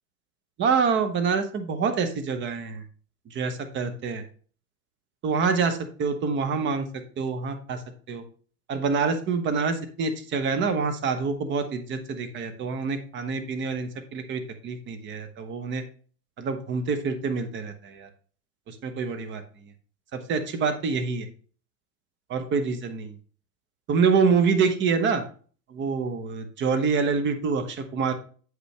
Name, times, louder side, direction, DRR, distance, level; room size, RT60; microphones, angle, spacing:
voice 1, 0.6-2.8 3.3-4.2 5.2-6.9 7.2-7.8 8.1-8.2 8.7-15.8 16.4-18.1 18.7-19.4 20.1-21.3 22.3-23.2 23.9-25.2 25.7-28.1, right 5 dB, 25° right, 8 dB, 0.9 m, -26 dB
7.8 x 5.3 x 3.3 m, 0.42 s
supercardioid pair, 130°, 46 cm